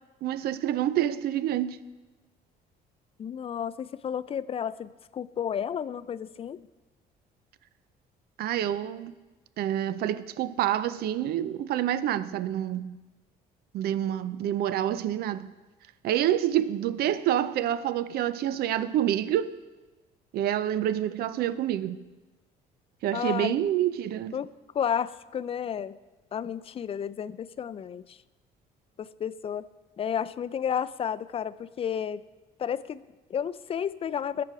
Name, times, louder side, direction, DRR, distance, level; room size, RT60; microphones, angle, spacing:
voice 1, 0.2-1.8 8.4-9.1 9.6-13.0 13.7-15.5 16.0-19.5 20.3-22.0 23.0-24.4, right 11 dB, 65° right, 0.6 m, -27 dB
voice 2, 3.2-6.6 23.1-23.6 24.3-24.5 24.7-26.0 26.3-28.2 29.0-29.7 30.0-32.2 32.6-34.4, left 8 dB, 35° left, 0.4 m, -32 dB
20.0 x 6.8 x 4.8 m
cardioid pair, 110°, 17 cm